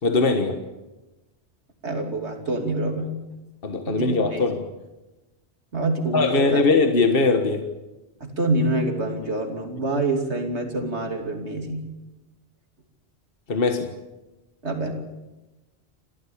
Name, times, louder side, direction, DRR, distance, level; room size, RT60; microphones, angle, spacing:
voice 1, 0.0-0.6 3.6-4.6 6.1-7.7 13.5-13.9, left 3 dB, 55° left, 6 dB, 1.7 m, -20 dB
voice 2, 1.8-3.2 3.9-4.4 5.7-6.7 8.2-11.8 14.6-14.9, right 2 dB, 80° right, 4 dB, 3.2 m, -26 dB
28.5 x 13.5 x 8.6 m, 1.1 s
omnidirectional pair, 1.1 m